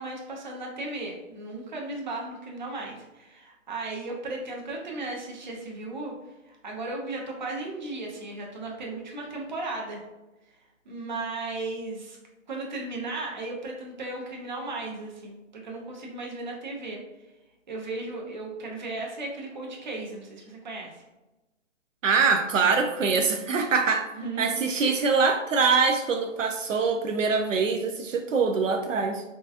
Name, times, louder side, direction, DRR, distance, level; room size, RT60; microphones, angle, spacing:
voice 1, 0.0-6.2 6.5-10.0 10.9-12.2 12.5-17.0 17.7-21.0 24.1-24.5, right 2 dB, 35° right, -1 dB, 0.6 m, -35 dB
voice 2, 22.0-24.1 24.4-29.2, right 4 dB, 75° right, 5 dB, 0.5 m, -24 dB
3.8 x 2.4 x 2.4 m, 1.0 s
hypercardioid pair, 160°, 39 cm